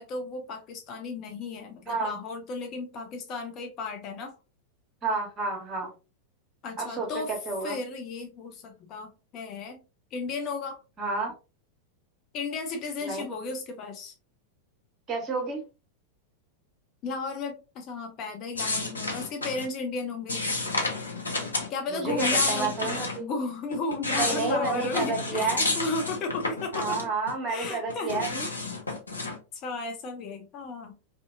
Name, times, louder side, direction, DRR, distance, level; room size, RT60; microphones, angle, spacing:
voice 1, 0.0-4.3 6.6-7.3 7.6-9.8 10.1-10.8 12.3-14.1 17.0-20.5 21.7-22.9 23.2-27.0 27.5-28.7 29.5-30.9, left 3 dB, 35° left, 0.5 m, -34 dB
voice 2, 5.0-5.9 6.8-7.8 11.0-11.3 13.0-13.3 15.1-15.6 21.9-23.3 24.2-25.7 26.7-28.5, right 3 dB, 25° right, 1.2 m, -30 dB
sound 1, 18.6-19.7 20.3-21.7 22.0-23.2 23.7-27.3 27.6-29.4, left 2 dB, 75° left, 0.6 m, -30 dB
2.6 x 2.4 x 2.4 m
figure-of-eight pair, 90°, 0 cm